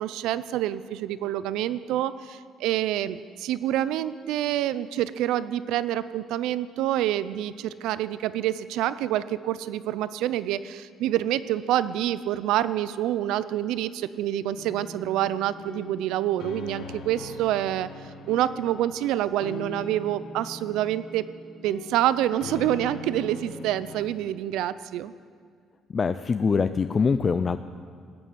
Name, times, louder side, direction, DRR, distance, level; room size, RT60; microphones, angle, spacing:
voice 1, 0.0-17.9 18.3-21.3 21.6-25.1, right 12 dB, 85° right, 16 dB, 0.5 m, -27 dB
sound 1, 14.5-24.1, left 3 dB, 60° left, 1.3 m, -42 dB
voice 2, 25.9-27.6, left 5 dB, 25° left, 11 dB, 0.3 m, -23 dB
18.5 x 6.9 x 9.1 m, 2.1 s
cardioid pair, 150°, 0 cm